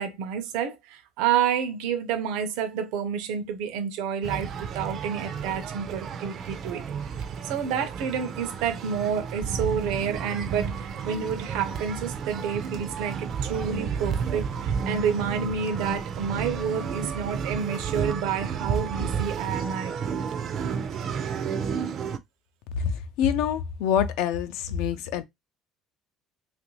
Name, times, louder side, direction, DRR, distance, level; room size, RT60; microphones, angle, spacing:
voice 1, 0.0-6.9 7.4-19.9, right 7 dB, 85° right, 0.6 m, -29 dB
sound 1, 4.2-22.2, right 6 dB, 35° right, 0.4 m, -32 dB
voice 2, 22.8-25.2, left 8 dB, 70° left, 0.5 m, -26 dB
3.0 x 2.5 x 3.0 m
cardioid pair, 175°, 0 cm